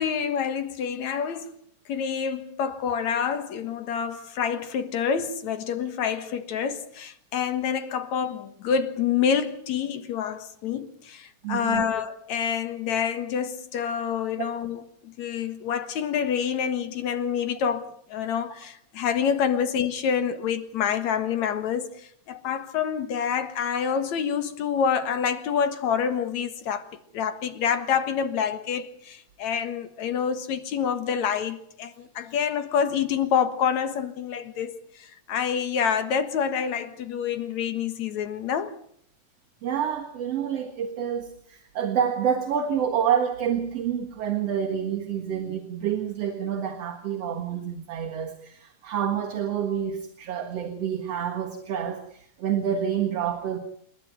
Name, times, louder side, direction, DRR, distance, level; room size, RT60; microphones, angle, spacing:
voice 1, 0.0-1.5 1.9-38.7, left 7 dB, 70° left, 2.8 m, -27 dB
voice 2, 11.4-11.9 39.6-53.6, right 8 dB, 55° right, 2.7 m, -28 dB
28.5 x 12.0 x 9.2 m
omnidirectional pair, 3.4 m